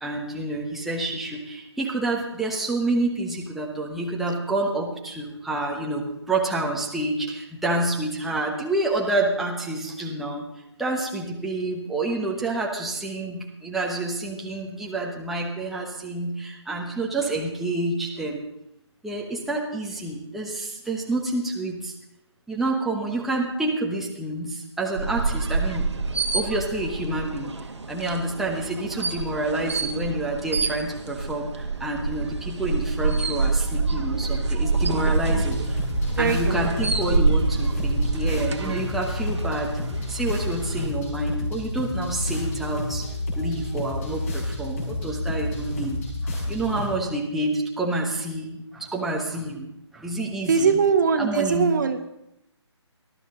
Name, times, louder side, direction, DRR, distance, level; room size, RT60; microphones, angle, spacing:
voice 1, 0.0-10.4 10.8-18.4 19.0-21.9 22.5-25.9 26.3-27.5 27.9-35.8 36.2-39.7 40.1-43.1 43.3-50.8 51.2-51.7, right 2 dB, ahead, -2 dB, 1.1 m, -28 dB
sound 1, 24.9-40.9, right 3 dB, 70° right, 1.5 m, -27 dB
sound 2, 35.1-46.9, left 2 dB, 30° left, 5.0 m, -30 dB
voice 2, 36.2-36.9 50.5-52.0, right 5 dB, 40° right, 8 dB, 0.9 m, -22 dB
18.5 x 12.5 x 3.8 m, 0.82 s
figure-of-eight pair, 145°, 15 cm